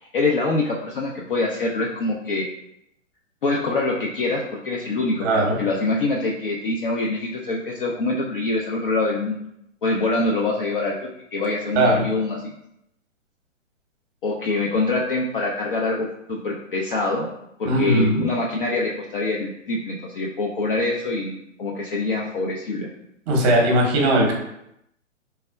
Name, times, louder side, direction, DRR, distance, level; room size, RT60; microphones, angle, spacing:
voice 1, 0.0-2.5 3.4-9.4 9.8-10.9 11.3-12.5 14.2-17.3 17.6-22.9, left 2 dB, 45° left, -2 dB, 0.5 m, -25 dB
voice 2, 5.2-5.6 11.8-12.0 17.7-18.2 23.3-24.3, right 1 dB, 25° right, 0 dB, 0.8 m, -19 dB
4.1 x 3.3 x 2.2 m, 0.79 s
figure-of-eight pair, 120°, 39 cm